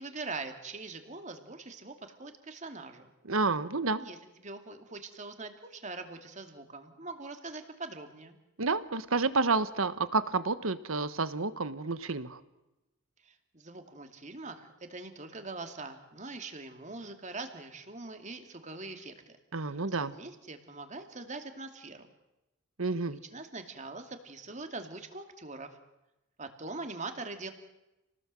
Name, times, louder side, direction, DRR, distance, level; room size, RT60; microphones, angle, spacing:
voice 1, 0.0-3.1 4.0-8.4 13.2-19.3 19.6-22.1 23.1-25.7 26.4-27.5, right 3 dB, 35° right, 6 dB, 2.5 m, -43 dB
voice 2, 3.3-4.0 8.6-12.4 19.5-20.1 22.8-23.2, right 3 dB, 80° right, 13 dB, 1.3 m, -30 dB
29.0 x 19.0 x 7.6 m, 0.97 s
head